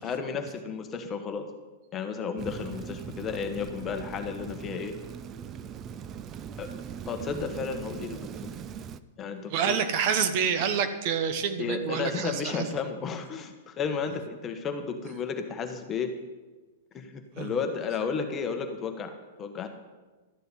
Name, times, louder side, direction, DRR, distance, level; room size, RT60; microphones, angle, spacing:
voice 1, 0.0-1.5 1.9-4.9 6.6-6.7 7.1-8.5 9.2-9.8 11.6-16.1 16.9-19.7, left 5 dB, 20° left, 5 dB, 1.2 m, -33 dB
Rain, 2.4-9.0, right 8 dB, 25° right, 0.4 m, -40 dB
voice 2, 9.5-12.7 17.4-17.5, right 7 dB, 45° right, 10 dB, 0.9 m, -27 dB
12.5 x 6.8 x 7.7 m, 1.2 s
hypercardioid pair, 145°, 0 cm